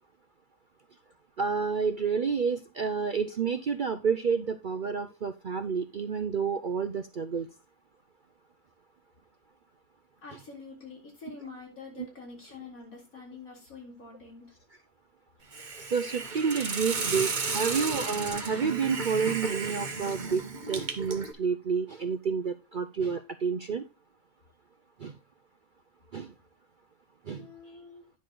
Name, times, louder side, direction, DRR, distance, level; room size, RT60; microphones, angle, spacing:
voice 1, 1.4-7.5 12.0-12.1 15.9-20.4 20.7-23.8 25.0-25.1 26.1-26.3 27.3-27.5, right 6 dB, 50° right, 8 dB, 0.6 m, -29 dB
voice 2, 10.2-14.5 27.4-28.0, left 4 dB, 75° left, -1 dB, 4.1 m, -46 dB
Hiss, 15.5-21.3, right 4 dB, 35° right, 1.2 m, -33 dB
9.6 x 6.2 x 3.8 m, 0.28 s
omnidirectional pair, 1.5 m